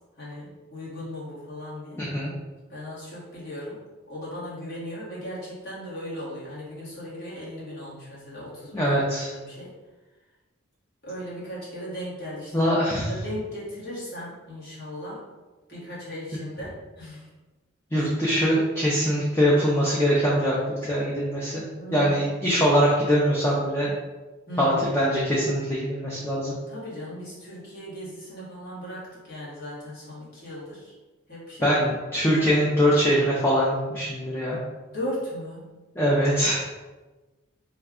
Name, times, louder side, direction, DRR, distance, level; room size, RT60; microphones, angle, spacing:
voice 1, 0.2-2.1 2.7-3.8 4.1-9.7 11.0-15.2 15.7-17.3 17.9-18.1 21.7-22.3 24.5-24.9 26.7-30.9 31.3-31.7 34.9-35.7, equal, 50° left, -8 dB, 1.4 m, -37 dB
voice 2, 2.0-2.3 8.7-9.3 12.5-13.1 17.9-21.6 21.9-23.9 24.6-26.5 31.6-34.6 36.0-36.6, equal, 10° left, -6 dB, 0.4 m, -22 dB
3.2 x 2.2 x 3.6 m, 1.2 s
head